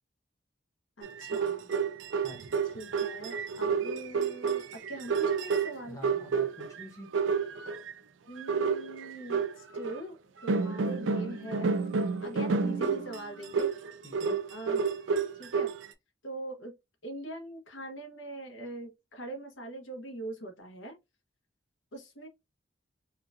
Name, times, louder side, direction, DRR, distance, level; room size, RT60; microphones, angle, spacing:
voice 1, 1.0-1.7 2.7-6.2 8.3-10.2 10.4-11.7 12.2-13.7 14.5-14.8 15.4-15.7 16.2-16.7 17.0-21.0 21.9-22.3, right 1 dB, 75° left, 1.0 m, -42 dB
sound 1, 1.0-6.8 7.1-7.9 8.4-10.0 10.5-15.9, right 5 dB, 80° right, 0.5 m, -30 dB
voice 2, 2.2-2.6 5.9-7.1 14.0-14.4, equal, 15° left, 1.0 m, -47 dB
4.3 x 2.4 x 2.5 m
head